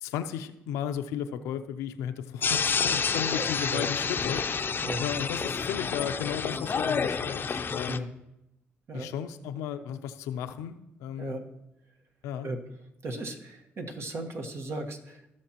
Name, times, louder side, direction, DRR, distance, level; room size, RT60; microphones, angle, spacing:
voice 1, 0.0-8.1 8.9-11.4 12.2-12.5, left 9 dB, 90° left, 9 dB, 0.5 m, -35 dB
sound 1, 2.4-8.0, left 6 dB, 45° left, 0.5 m, -29 dB
voice 2, 3.3-3.8 4.8-5.1 7.9-8.1 8.9-9.1 11.2-11.4 12.4-12.6 13.0-15.3, right 2 dB, 60° right, 2 dB, 1.4 m, -36 dB
16.0 x 6.4 x 2.9 m, 0.87 s
supercardioid pair, 60°, 5 cm